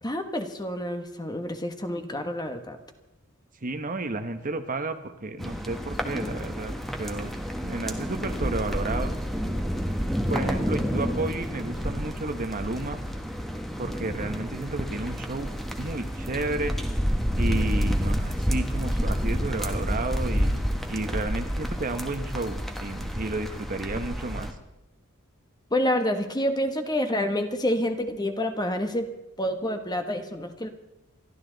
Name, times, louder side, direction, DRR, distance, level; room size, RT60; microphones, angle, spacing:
voice 1, 0.0-2.8 25.7-29.1 29.4-30.7, left 1 dB, 20° left, 6 dB, 1.4 m, -28 dB
voice 2, 3.6-6.7 7.0-7.3 7.6-9.1 9.9-13.0 13.8-16.8 17.4-20.6 20.9-24.5, right 2 dB, 40° right, 8 dB, 1.1 m, -32 dB
sound 1, 5.4-24.5, equal, ahead, 1.4 m, -29 dB
28.5 x 12.5 x 4.0 m, 0.95 s
head